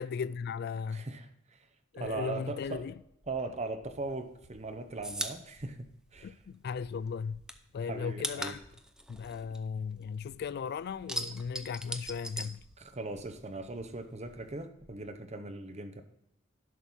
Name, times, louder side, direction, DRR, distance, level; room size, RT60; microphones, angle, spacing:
voice 1, 0.0-1.1 1.9-3.0 6.2-7.4 7.7-8.6 9.1-12.6, left 6 dB, 50° left, 0.3 m, -37 dB
voice 2, 0.9-1.6 2.0-2.9 3.3-5.8 6.1-6.3 7.9-8.6 12.8-16.0, right 2 dB, 35° right, 0.8 m, -39 dB
sound 1, 2.8-15.2, equal, 85° right, 1.6 m, -62 dB
sound 2, 4.0-6.8 7.1-10.4 10.7-13.3 13.5-14.7, right 1 dB, 5° right, 0.6 m, -40 dB
11.0 x 5.3 x 6.2 m
head